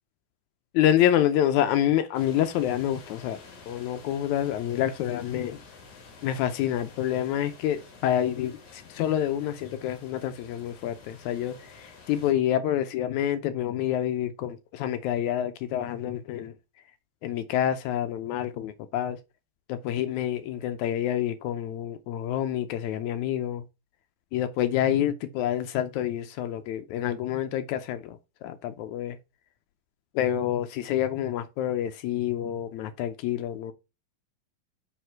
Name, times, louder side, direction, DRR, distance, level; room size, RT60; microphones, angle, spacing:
voice 1, 0.7-3.4 3.7-5.6 6.2-16.5 17.2-19.2 19.7-23.6 24.3-29.2 30.1-33.7, left 11 dB, 85° left, 1.6 m, -27 dB
sound 1, 2.1-12.3, left 4 dB, 60° left, 3.6 m, -50 dB
9.3 x 3.6 x 4.5 m
omnidirectional pair, 4.1 m